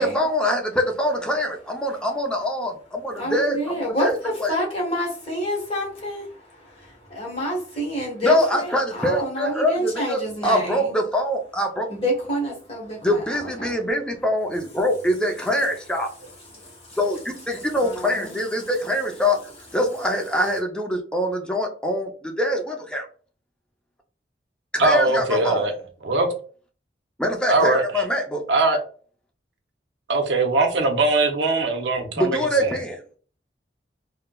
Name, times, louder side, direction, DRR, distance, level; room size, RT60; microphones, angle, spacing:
voice 1, 0.0-4.5 8.2-11.9 13.0-16.1 17.0-23.1 24.7-25.7 27.2-28.4 32.2-33.0, left 1 dB, 5° left, 0.5 m, -24 dB
voice 2, 3.1-6.2 7.1-10.9 11.9-13.8 16.6-17.0 17.7-18.3, equal, 35° left, 1.3 m, -28 dB
voice 3, 24.8-25.7 26.0-26.3 27.5-28.0 28.5-28.8 30.1-32.7, right 3 dB, 85° right, 0.6 m, -21 dB
3.7 x 2.1 x 2.2 m
head